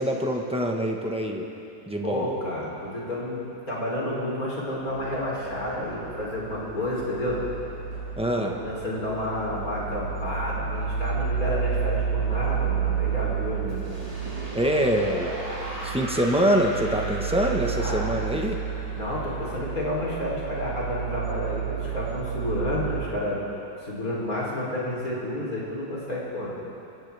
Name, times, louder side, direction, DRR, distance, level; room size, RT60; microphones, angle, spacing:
voice 1, 0.0-1.5 1.9-2.3 8.2-8.5 14.5-15.3 15.8-18.6, equal, 5° right, 1 dB, 0.8 m, -25 dB
voice 2, 2.0-3.4 3.7-7.4 8.3-13.8 17.8-18.2 18.9-23.4 23.8-26.5, left 1 dB, 50° left, -5 dB, 3.8 m, -30 dB
sound 1, 4.8-23.0, right 7 dB, 75° left, 5.3 m, -31 dB
sound 2, 13.7-20.6, right 1 dB, 20° right, 2.1 m, -38 dB
25.5 x 16.0 x 3.4 m, 2.8 s
omnidirectional pair, 2.0 m